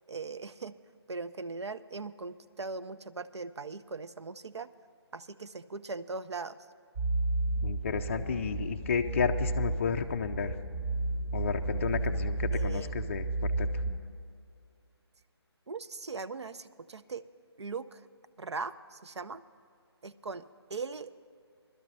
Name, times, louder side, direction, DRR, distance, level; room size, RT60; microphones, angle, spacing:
voice 1, 0.1-0.8 1.1-4.7 5.1-6.6 12.5-13.0 15.7-17.2 17.6-18.1 18.4-19.4 20.0-21.2, right 4 dB, 80° right, 13 dB, 0.6 m, -40 dB
sound 1, 7.0-14.0, right 2 dB, 35° right, 1.1 m, -32 dB
voice 2, 7.6-10.5 11.3-13.8, left 6 dB, 30° left, 6 dB, 0.3 m, -32 dB
21.5 x 12.0 x 3.1 m, 2.3 s
figure-of-eight pair, 155°, 14 cm